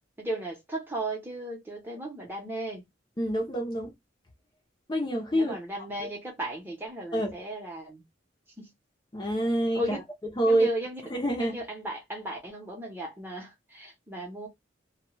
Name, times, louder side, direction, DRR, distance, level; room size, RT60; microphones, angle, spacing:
voice 1, 0.2-2.9 5.3-8.0 8.6-8.7 9.7-9.9 10.5-11.0 11.4-14.5, right 1 dB, 10° right, 0.8 m, -36 dB
voice 2, 3.2-3.9 4.9-5.6 6.0-6.1 7.1-7.3 9.1-10.0 10.4-10.7 11.1-11.6, right 1 dB, 25° left, 0.5 m, -26 dB
2.2 x 2.2 x 3.1 m
head